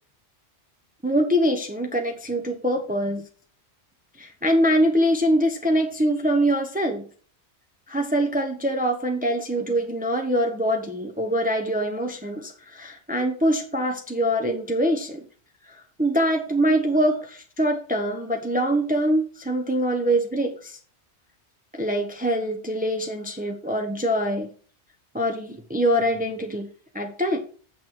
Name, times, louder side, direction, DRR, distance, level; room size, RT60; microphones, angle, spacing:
voice 1, 1.0-3.2 4.2-7.0 7.9-15.2 15.7-20.8 21.7-24.5 25.1-26.7 26.9-27.4, equal, 10° right, 3 dB, 1.0 m, -24 dB
8.3 x 6.1 x 4.6 m, 0.42 s
omnidirectional pair, 1.2 m